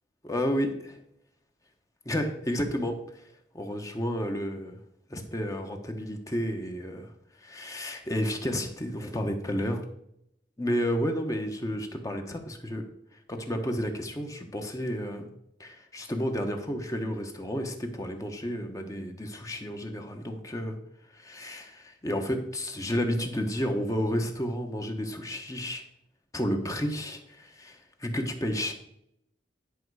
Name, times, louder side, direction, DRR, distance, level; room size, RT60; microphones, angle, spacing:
voice 1, 0.2-0.7 2.0-3.0 3.5-4.8 5.1-7.1 7.4-9.8 10.6-12.8 13.3-15.3 15.6-20.8 21.1-25.8 26.3-28.7, equal, 20° left, 4 dB, 1.1 m, -31 dB
10.5 x 5.4 x 4.8 m, 0.74 s
head